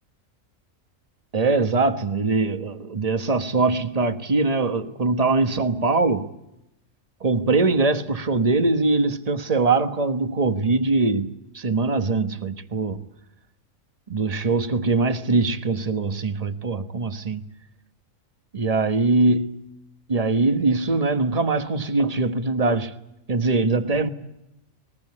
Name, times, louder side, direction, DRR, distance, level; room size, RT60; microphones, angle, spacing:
voice 1, 1.3-6.3 7.2-13.0 14.1-17.4 18.5-19.7 20.1-23.0 23.3-24.1, right 3 dB, 30° right, 1.3 m, -22 dB
21.0 x 20.5 x 9.7 m
omnidirectional pair, 1.4 m